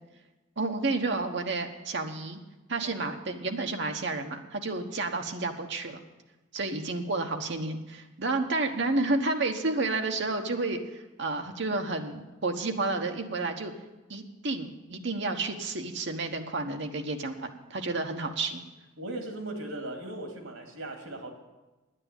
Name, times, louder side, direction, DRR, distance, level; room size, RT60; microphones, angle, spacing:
voice 1, 0.6-2.4 2.7-6.0 6.5-13.7 14.1-18.6, right 3 dB, 60° right, 4 dB, 1.2 m, -31 dB
voice 2, 19.0-21.3, right 1 dB, 85° right, 4 dB, 2.5 m, -38 dB
9.8 x 9.4 x 8.9 m, 1.1 s
head